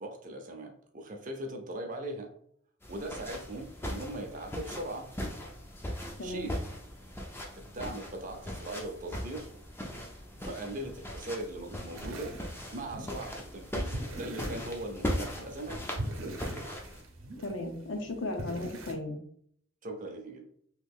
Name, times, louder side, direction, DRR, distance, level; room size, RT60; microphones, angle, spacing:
voice 1, 0.0-2.3 2.9-5.1 6.2-6.7 7.6-9.5 10.4-12.3 12.7-15.8 19.8-20.5, right 1 dB, 40° right, 4 dB, 0.5 m, -40 dB
sound 1, 2.8-17.0, equal, 10° left, 0.4 m, -39 dB
voice 2, 6.2-6.5 17.4-19.2, left 2 dB, 65° left, 4 dB, 0.6 m, -35 dB
sound 2, 11.9-18.9, right 1 dB, 85° right, 0.7 m, -42 dB
3.0 x 2.4 x 3.5 m, 0.65 s
head